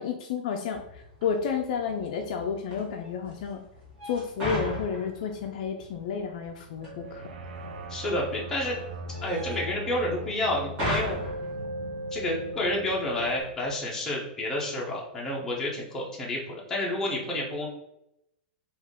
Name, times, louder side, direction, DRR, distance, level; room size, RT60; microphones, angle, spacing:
voice 1, 0.0-3.6 4.0-7.2, left 6 dB, 50° left, 4 dB, 0.4 m, -31 dB
sound 1, 0.7-13.8, equal, 20° right, 1.4 m, -39 dB
sound 2, 6.8-13.4, right 1 dB, 80° right, 0.5 m, -38 dB
voice 2, 7.9-8.8 9.2-11.2 12.1-17.7, left 1 dB, 10° left, -4 dB, 0.7 m, -30 dB
3.5 x 2.4 x 3.6 m, 0.80 s
supercardioid pair, 165°, 5 cm